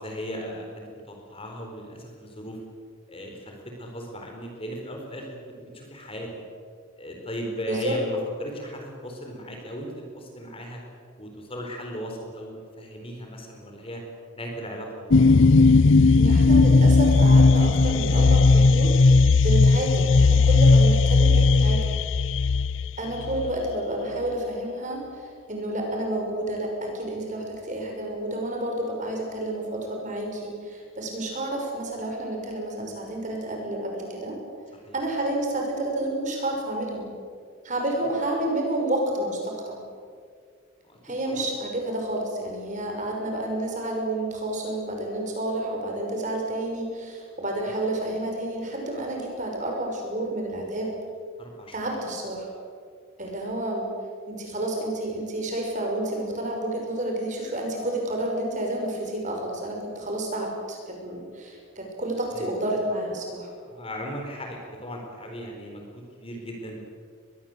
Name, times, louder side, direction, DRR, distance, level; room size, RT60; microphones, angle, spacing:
voice 1, 0.0-2.6 3.1-6.3 7.0-10.8 11.2-14.0 14.3-15.4 22.4-22.7 34.7-35.0 40.9-41.0 41.2-41.4 47.7-47.8 51.4-51.8 62.3-62.6 63.7-66.8, equal, 25° left, 2 dB, 4.4 m, -37 dB
sound 1, 15.1-23.7, left 3 dB, 65° left, 0.6 m, -17 dB
voice 2, 16.2-19.0 19.4-21.9 23.0-34.4 34.9-37.1 37.6-39.8 41.0-50.9 51.7-52.5 53.2-53.9 54.3-63.5, right 1 dB, 35° right, 1 dB, 5.9 m, -30 dB
23.5 x 21.0 x 8.0 m, 2.1 s
head